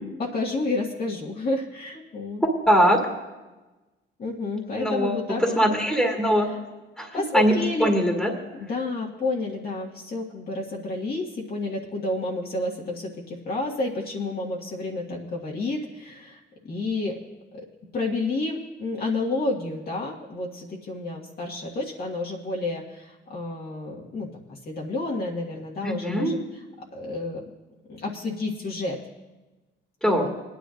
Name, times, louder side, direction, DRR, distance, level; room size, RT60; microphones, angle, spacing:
voice 1, 0.0-2.4 4.2-5.8 7.1-7.9 8.5-17.2 17.5-17.7 17.9-26.4 26.9-27.4 27.9-29.0 30.0-30.3, left 2 dB, 50° left, -3 dB, 1.7 m, -30 dB
voice 2, 2.4-3.1 4.8-5.2 5.6-6.5 7.0-8.3 25.8-26.4 30.0-30.3, equal, ahead, -1 dB, 2.0 m, -22 dB
21.5 x 10.0 x 2.6 m, 1.1 s
cardioid pair, 90°, 20 cm